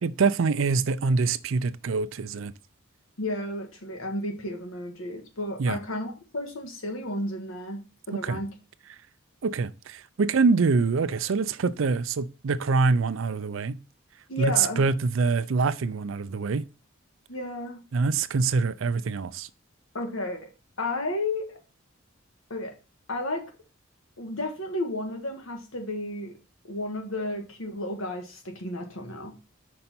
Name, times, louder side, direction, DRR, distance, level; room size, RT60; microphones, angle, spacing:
voice 1, 0.0-2.5 5.6-5.8 8.2-8.4 9.4-13.8 14.4-16.7 17.9-19.5, right 4 dB, 70° right, 0.4 m, -25 dB
voice 2, 3.2-7.8 8.1-8.5 14.3-14.8 17.3-17.8 19.9-20.5 20.8-21.6 22.5-22.7 23.1-23.5 24.2-26.3 26.7-29.3, left 1 dB, 80° left, 1.6 m, -32 dB
5.5 x 5.4 x 4.3 m
head